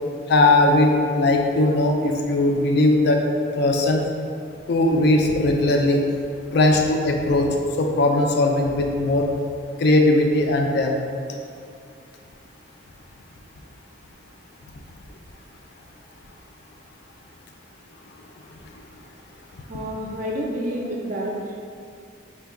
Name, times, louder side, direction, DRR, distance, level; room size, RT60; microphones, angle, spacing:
voice 1, 0.3-3.2 3.5-4.0 4.7-6.0 6.5-7.5 7.8-9.3 9.8-10.9, left 2 dB, 55° left, 2 dB, 0.3 m, -19 dB
voice 2, 19.7-21.4, equal, 40° right, -2 dB, 0.4 m, -29 dB
4.4 x 2.2 x 3.5 m, 2.3 s
head